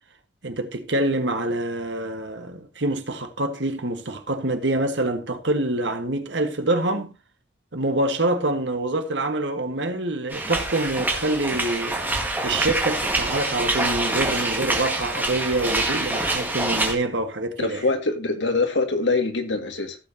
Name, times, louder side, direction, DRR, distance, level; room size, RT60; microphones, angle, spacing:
voice 1, 0.4-7.1 7.7-12.0 12.4-17.9, right 2 dB, 70° right, 1.5 m, -26 dB
sound 1, 10.3-17.0, right 2 dB, 10° right, 1.7 m, -25 dB
voice 2, 17.6-20.0, left 3 dB, 80° left, 1.9 m, -24 dB
15.5 x 7.2 x 2.8 m
head